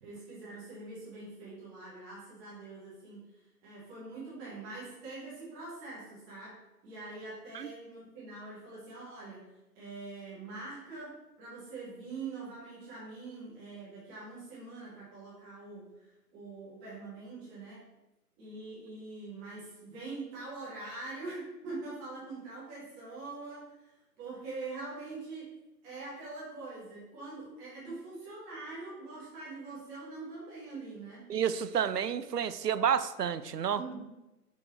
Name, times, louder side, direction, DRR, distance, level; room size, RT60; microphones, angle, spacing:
voice 1, 0.0-3.2 3.6-6.6 6.8-9.5 9.7-17.8 18.4-25.5 25.8-31.2 33.7-34.1, right 3 dB, 5° right, -9 dB, 1.0 m, -44 dB
voice 2, 31.3-33.8, right 8 dB, 75° right, 14 dB, 0.6 m, -30 dB
6.1 x 3.9 x 4.4 m, 1.0 s
figure-of-eight pair, 150°, 48 cm